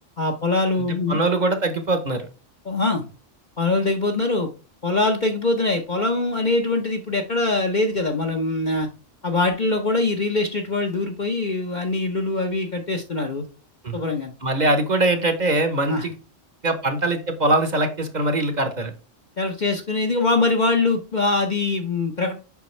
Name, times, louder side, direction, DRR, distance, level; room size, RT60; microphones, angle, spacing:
voice 1, 0.2-1.3 2.6-3.1 3.6-4.5 4.8-8.9 9.2-13.4 13.9-14.3 15.9-16.1 19.4-22.4, left 2 dB, 45° left, 2 dB, 0.8 m, -23 dB
voice 2, 0.8-2.3 13.8-14.0 14.4-16.1 16.6-18.9, right 2 dB, 40° right, 8 dB, 0.9 m, -22 dB
7.0 x 5.1 x 3.2 m, 0.33 s
omnidirectional pair, 1.3 m